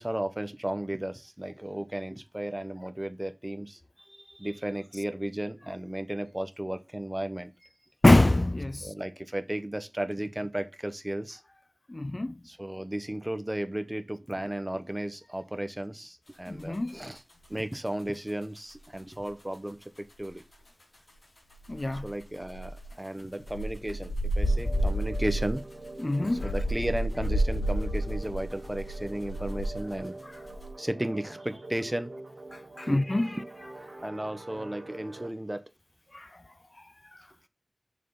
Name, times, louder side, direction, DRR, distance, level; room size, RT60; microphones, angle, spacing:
voice 1, 0.0-3.8 4.1-7.5 8.8-11.4 12.4-17.2 17.5-20.4 22.0-25.6 26.4-30.2 30.8-32.1 32.9-33.0 34.0-35.6, right 1 dB, 15° right, 1.3 m, -34 dB
voice 2, 8.0-8.9 11.9-12.4 16.5-17.0 21.7-22.0 26.0-26.5 32.8-33.3 36.1-36.3, left 1 dB, 35° left, 0.4 m, -24 dB
sound 1, 16.6-19.0 19.3-19.7 20.0-20.1 20.2-20.4 20.8-20.9 21.1-21.2 21.5-30.1 30.3-30.7, right 1 dB, 60° left, 3.8 m, -30 dB
sound 2, 24.4-35.3, right 2 dB, 70° right, 2.2 m, -45 dB
6.8 x 6.2 x 4.0 m
wide cardioid pair, 60°, 0 cm